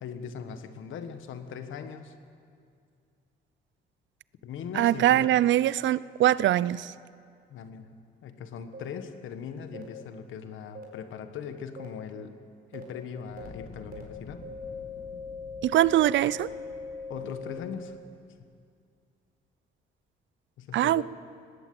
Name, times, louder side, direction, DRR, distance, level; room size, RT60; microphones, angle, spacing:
voice 1, 0.0-2.1 4.4-5.4 7.5-7.9 8.2-12.3 12.7-14.5 17.1-18.0 20.6-21.0, left 7 dB, 80° left, 9 dB, 1.5 m, -40 dB
voice 2, 4.7-6.9 15.6-16.5 20.7-21.0, right 13 dB, 70° right, 20 dB, 0.5 m, -22 dB
sound 1, 8.7-8.8 9.7-9.8 10.7-10.8 11.8-11.9 12.7-12.8 13.4-13.5 13.9-14.0 14.4-17.6, left 3 dB, 50° right, 4.4 m, -40 dB
Fire, 13.2-18.4, left 5 dB, 60° left, 1.7 m, -50 dB
18.5 x 18.0 x 7.8 m, 2.3 s
cardioid pair, 90°, 20 cm